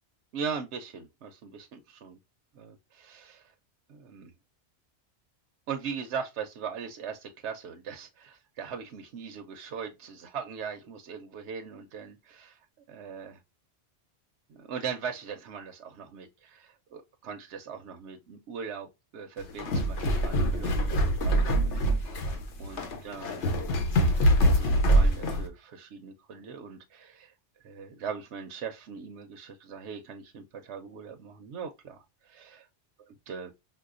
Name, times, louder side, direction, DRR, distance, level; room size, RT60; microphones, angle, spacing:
voice 1, 0.3-2.2 2.5-3.5 3.9-4.3 5.7-13.4 14.5-23.6 24.0-27.3 27.6-32.7 33.3-33.5, right 6 dB, 80° right, 0.9 m, -40 dB
sound 1, 19.4-25.5, equal, 90° left, 1.2 m, -24 dB
5.3 x 2.1 x 2.4 m
omnidirectional pair, 1.2 m